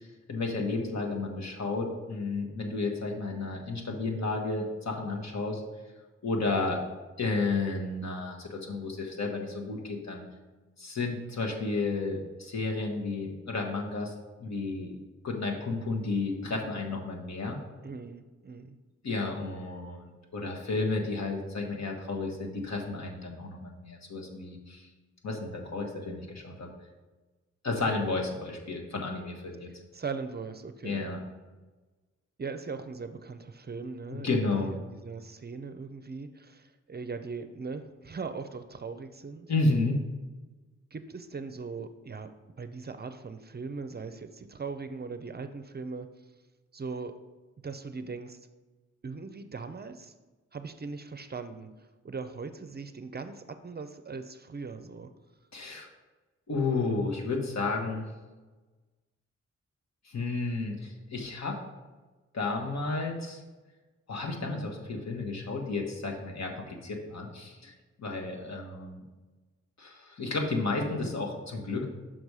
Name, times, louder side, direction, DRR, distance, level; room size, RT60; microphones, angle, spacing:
voice 1, 0.0-5.6 6.2-6.8 7.2-10.2 10.8-14.1 14.4-17.6 19.0-24.9 25.2-26.7 27.6-29.7 30.8-31.2 34.1-34.7 39.5-40.0 55.5-55.9 56.5-58.1 60.0-61.6 62.3-63.4 64.1-67.7 68.0-69.0 69.8-71.8, left 3 dB, 65° left, 1 dB, 1.3 m, -32 dB
voice 2, 17.8-18.8 29.9-31.1 32.4-39.5 40.9-42.3 42.6-46.1 46.7-47.2 47.6-48.4 49.0-50.1 50.5-55.1, right 4 dB, 35° right, 9 dB, 0.5 m, -40 dB
6.1 x 5.3 x 4.8 m, 1.2 s
cardioid pair, 80°, 29 cm